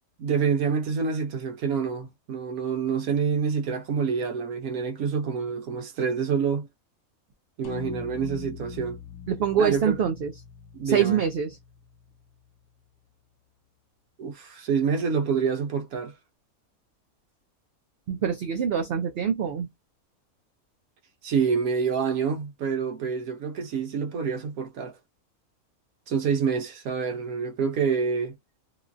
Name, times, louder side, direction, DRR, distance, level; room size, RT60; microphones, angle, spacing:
voice 1, 0.2-6.7 7.6-9.0 9.6-10.0 10.7-11.2 14.2-16.1 21.2-25.0 26.1-28.3, right 6 dB, 80° right, 1.2 m, -27 dB
sound 1, 7.6-12.1, left 7 dB, 65° left, 1.2 m, -42 dB
voice 2, 9.3-10.3 10.9-11.5 18.1-19.7, right 8 dB, 65° right, 0.6 m, -25 dB
3.0 x 2.3 x 2.5 m
omnidirectional pair, 1.5 m